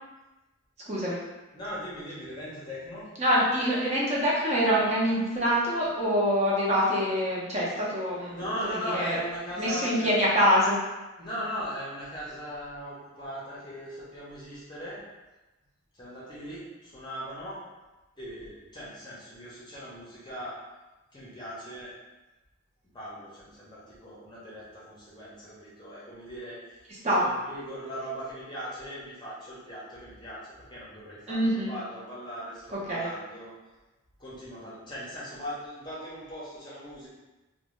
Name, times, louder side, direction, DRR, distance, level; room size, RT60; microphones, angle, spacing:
voice 1, 0.9-1.2 3.2-9.2 9.6-10.8 26.9-27.2 31.3-31.7 32.9-33.1, equal, 30° right, -6 dB, 0.6 m, -25 dB
voice 2, 1.5-3.1 8.3-10.1 11.2-15.0 15.9-17.6 18.2-20.5 21.1-21.9 22.9-26.6 27.1-33.5 34.2-37.1, equal, 20° left, -8 dB, 0.6 m, -39 dB
2.6 x 2.1 x 3.1 m, 1.1 s
head